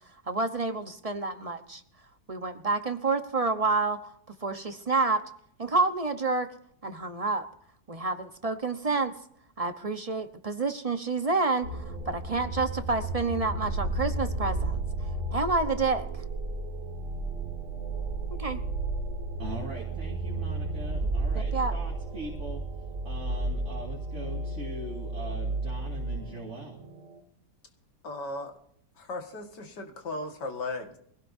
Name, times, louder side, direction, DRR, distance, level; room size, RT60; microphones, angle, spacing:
voice 1, 0.3-1.8 2.3-4.1 4.4-5.2 5.6-6.5 6.8-7.5 7.9-9.1 9.6-14.8 15.3-16.1 18.3-18.6 21.3-21.8, right 3 dB, 25° right, 8 dB, 0.8 m, -28 dB
sound 1, 11.6-27.2, right 2 dB, 90° right, 3.0 m, -33 dB
voice 2, 19.4-22.6 23.0-26.8, right 1 dB, 45° right, -2 dB, 2.6 m, -41 dB
voice 3, 28.0-28.5 29.0-31.0, left 2 dB, 85° left, 4 dB, 2.5 m, -36 dB
23.5 x 17.0 x 2.7 m, 0.66 s
omnidirectional pair, 1.8 m